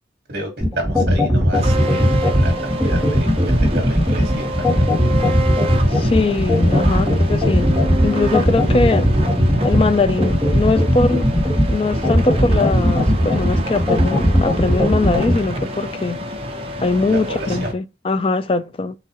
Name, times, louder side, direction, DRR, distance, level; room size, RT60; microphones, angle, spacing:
voice 1, 0.3-4.9 6.8-7.0 17.1-17.7, right 1 dB, 55° right, 1.6 m, -31 dB
sound 1, 0.6-15.3, equal, 5° right, 2.2 m, -17 dB
sound 2, 1.5-17.7, right 1 dB, 30° right, 0.7 m, -28 dB
voice 2, 5.9-7.7 8.0-9.1 9.6-11.3 11.7-16.2 16.8-19.0, left 3 dB, 30° left, 0.3 m, -21 dB
4.7 x 3.1 x 2.9 m
head